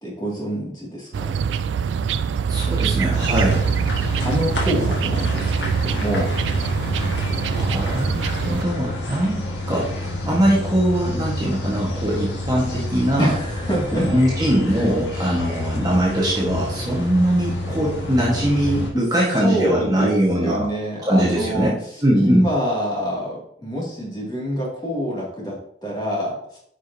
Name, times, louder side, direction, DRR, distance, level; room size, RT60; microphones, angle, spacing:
voice 1, 0.0-1.3 4.2-6.3 13.2-14.1 15.1-15.4 18.9-19.1 19.4-21.7 22.1-25.6 25.8-26.6, equal, 20° left, -4 dB, 2.2 m, -26 dB
sound 1, 1.1-8.6, right 6 dB, 75° right, 0.3 m, -24 dB
voice 2, 2.5-3.6 7.4-9.9 10.2-13.3 13.9-20.7 21.0-21.8 22.0-22.4, equal, 20° right, -5 dB, 1.3 m, -21 dB
sound 2, 3.1-18.9, left 1 dB, 70° left, 1.7 m, -29 dB
9.2 x 4.9 x 2.7 m, 0.69 s
head